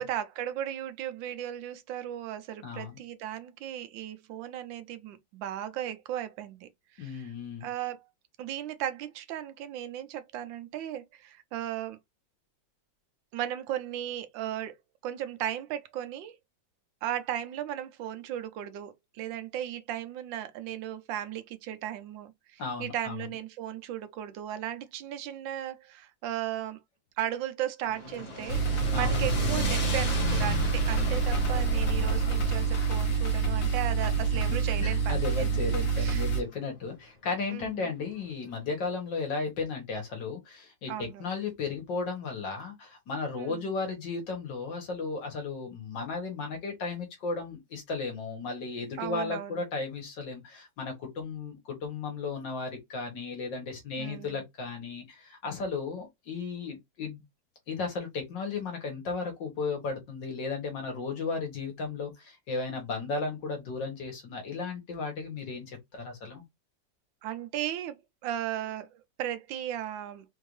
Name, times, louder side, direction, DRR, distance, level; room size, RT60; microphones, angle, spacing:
voice 1, 0.0-6.7 7.0-7.3 7.6-8.0 8.4-12.0 13.3-14.7 15.0-16.3 17.0-26.8 27.2-28.6 28.9-36.3 37.5-37.9 40.9-41.2 43.4-43.6 49.0-49.6 54.0-54.4 67.2-68.0 68.2-70.2, right 11 dB, 85° right, 1.4 m, -36 dB
voice 2, 2.6-3.0 7.0-7.7 22.6-23.2 28.9-29.2 34.5-57.2 57.7-66.4, left 4 dB, 70° left, 2.1 m, -35 dB
sound 1, 27.8-36.1, left 3 dB, 40° left, 1.8 m, -36 dB
sound 2, 28.5-36.4, right 5 dB, 55° left, 1.9 m, -27 dB
4.4 x 2.7 x 3.1 m
omnidirectional pair, 2.0 m